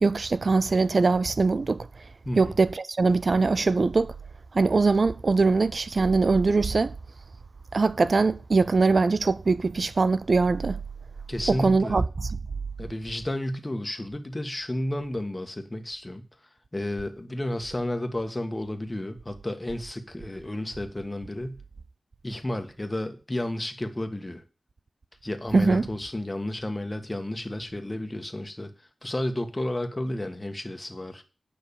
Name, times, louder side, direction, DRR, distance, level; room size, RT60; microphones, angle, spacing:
voice 1, 0.0-1.9 2.4-4.1 4.5-6.9 7.7-10.8 11.5-12.3 25.5-25.8, right 3 dB, 55° right, 0.4 m, -22 dB
voice 2, 11.3-12.0 12.8-16.2 16.7-21.6 22.2-24.4 25.2-28.7 29.0-31.2, left 1 dB, 20° left, 1.5 m, -32 dB
9.5 x 5.8 x 7.0 m
wide cardioid pair, 80°, 0 cm